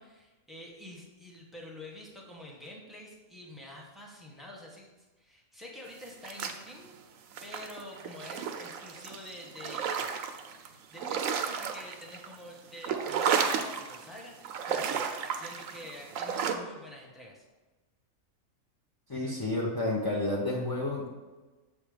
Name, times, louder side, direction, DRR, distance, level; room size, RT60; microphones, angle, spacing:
voice 1, 0.0-4.9 5.2-6.9 7.4-10.1 10.6-15.0 15.3-17.4 19.2-19.4, left 1 dB, ahead, -1 dB, 1.0 m, -47 dB
sound 1, 6.1-7.0 7.3-10.7 11.0-12.4 12.7-14.1 14.4-16.6, right 7 dB, 75° right, 1.0 m, -33 dB
voice 2, 19.1-21.1, left 2 dB, 25° left, -4 dB, 0.5 m, -30 dB
7.1 x 3.5 x 5.0 m, 1.2 s
omnidirectional pair, 1.5 m